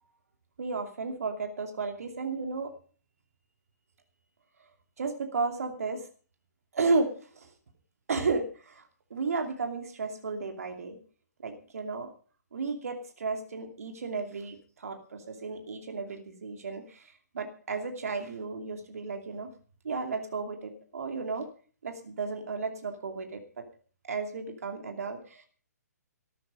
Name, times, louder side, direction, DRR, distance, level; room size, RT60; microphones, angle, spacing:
voice 1, 0.6-2.7 5.0-6.1 6.7-7.5 8.1-11.0 11.4-12.1 12.5-19.5 19.8-21.5 21.8-23.6 24.1-25.5, right 4 dB, 60° right, 5 dB, 2.6 m, -33 dB
14.0 x 12.5 x 5.1 m, 0.40 s
figure-of-eight pair, 125°, 9 cm